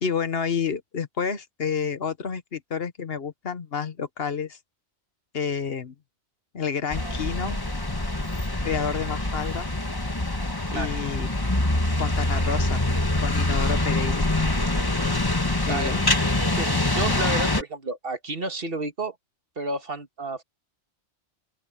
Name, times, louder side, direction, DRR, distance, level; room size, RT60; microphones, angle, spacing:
voice 1, 0.0-4.6 5.3-5.9 6.5-7.6 8.6-9.7 10.7-11.3 11.9-12.8 13.2-14.2 15.7-16.0, left 6 dB, 60° left, 1.3 m, -29 dB
sound 1, 6.9-17.6, left 2 dB, 20° left, 1.6 m, -25 dB
voice 2, 16.5-19.2 19.6-20.4, right 2 dB, 55° right, 1.8 m, -31 dB
open air
omnidirectional pair, 1.2 m